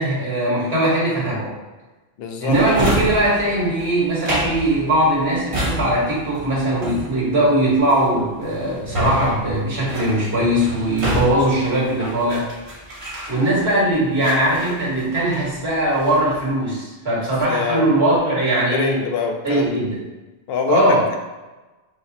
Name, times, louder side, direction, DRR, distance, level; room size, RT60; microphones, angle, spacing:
voice 1, 0.0-1.5 2.4-12.5 13.3-19.0 19.4-20.0 20.7-21.0, right 1 dB, 70° right, -7 dB, 1.9 m, -20 dB
voice 2, 2.2-2.6 17.4-17.8 18.7-19.7 20.5-21.2, left 4 dB, 70° left, 3 dB, 0.8 m, -24 dB
Drawer open or close, 2.5-13.8 14.2-15.5 15.8-16.3, equal, 35° right, 0.8 m, -28 dB
4.9 x 2.0 x 3.9 m, 1.2 s
omnidirectional pair, 1.1 m